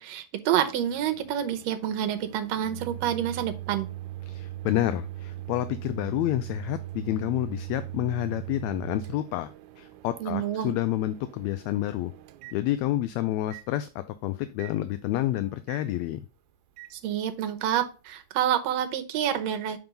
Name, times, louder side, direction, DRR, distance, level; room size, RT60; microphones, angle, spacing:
voice 1, 0.0-3.9 10.2-10.7 16.9-19.8, right 10 dB, 70° right, 7 dB, 1.9 m, -28 dB
Microwave oven, 0.5-13.1 13.5-13.7 14.6-14.8 15.7-15.8 16.8-16.9, right 14 dB, 85° right, 2.0 m, -41 dB
voice 2, 4.3-9.5 9.8-12.1 12.5-16.2, left 14 dB, 80° left, 11 dB, 1.7 m, -29 dB
5.9 x 4.8 x 5.1 m, 0.33 s
omnidirectional pair, 3.4 m